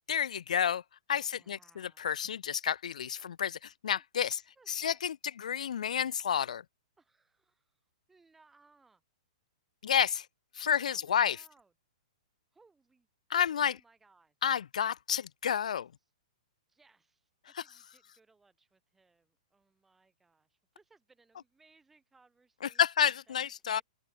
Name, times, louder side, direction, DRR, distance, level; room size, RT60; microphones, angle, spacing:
voice 1, 0.1-0.8 1.1-4.4 4.7-6.6 9.8-10.3 10.5-11.4 13.3-13.8 14.4-15.9 17.6-17.7 22.8-23.8, left 8 dB, 80° left, 1.0 m, -30 dB
voice 2, 1.2-2.1 4.4-5.0 7.0-7.8 8.1-9.0 10.6-11.7 12.5-13.1 13.7-14.3 16.7-23.8, right 3 dB, 5° right, 6.5 m, -66 dB
hypercardioid pair, 170°, 4 cm